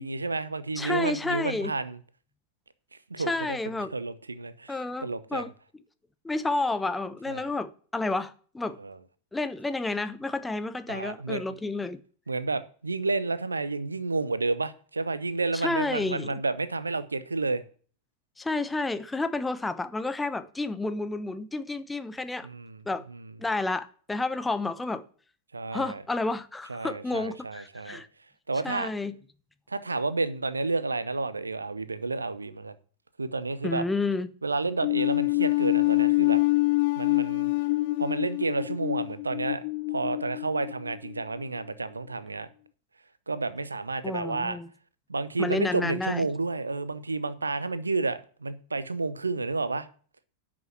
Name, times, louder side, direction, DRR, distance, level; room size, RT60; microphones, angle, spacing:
voice 1, 0.0-2.0 3.1-3.6 3.9-5.5 7.3-7.5 8.8-9.0 10.9-11.4 12.3-17.6 22.4-22.8 23.1-23.2 25.5-26.0 26.7-28.0 28.5-28.9 29.7-32.7 33.2-33.8 34.4-36.4 36.9-37.5 38.0-39.6 39.9-42.5 43.3-44.6 45.1-49.9, right 3 dB, 80° right, 0.9 m, -30 dB
voice 2, 0.8-1.8 3.3-3.9 4.7-5.5 6.2-8.8 9.3-12.0 15.5-16.4 18.4-22.5 22.9-23.0 23.4-25.0 25.7-28.1 28.6-29.1 33.6-34.3 44.0-44.7 45.4-46.3, left 2 dB, 10° left, 0.9 m, -30 dB
sound 1, 34.8-41.2, left 21 dB, 50° left, 0.4 m, -26 dB
11.0 x 6.2 x 7.5 m
figure-of-eight pair, 90°, 0 cm